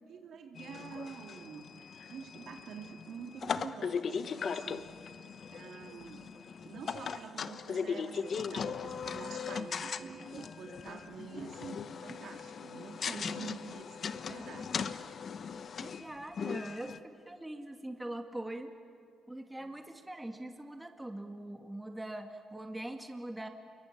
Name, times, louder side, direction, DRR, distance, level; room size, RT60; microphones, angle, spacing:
voice 1, 0.1-5.0 5.5-6.3 6.6-14.9 19.6-19.7, right 6 dB, 65° right, 4 dB, 2.6 m, -47 dB
sound 1, 0.6-17.0, left 6 dB, 50° left, 1.0 m, -39 dB
voice 2, 15.5-18.7 19.3-23.5, right 1 dB, 10° right, 5 dB, 2.2 m, -42 dB
28.0 x 23.5 x 8.7 m, 2.3 s
cardioid pair, 90°, 0 cm